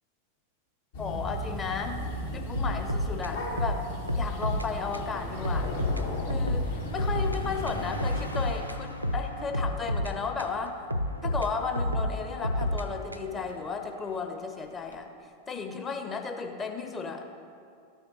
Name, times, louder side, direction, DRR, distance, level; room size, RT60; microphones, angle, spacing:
sound 1, 0.9-7.9, left 1 dB, 55° left, 1.6 m, -35 dB
voice 1, 1.0-2.1 2.3-3.8 4.1-5.7 6.3-10.8 11.2-15.1 15.5-17.2, left 5 dB, 20° left, 4 dB, 0.8 m, -34 dB
sound 2, 2.6-4.7 4.9-5.1 5.4-7.4 7.7-10.6 10.9-13.4, left 1 dB, 90° right, 0.4 m, -30 dB
Car passing by, 5.6-15.0, left 1 dB, 85° left, 0.7 m, -46 dB
13.0 x 6.5 x 3.1 m, 2.3 s
figure-of-eight pair, 90°, 0 cm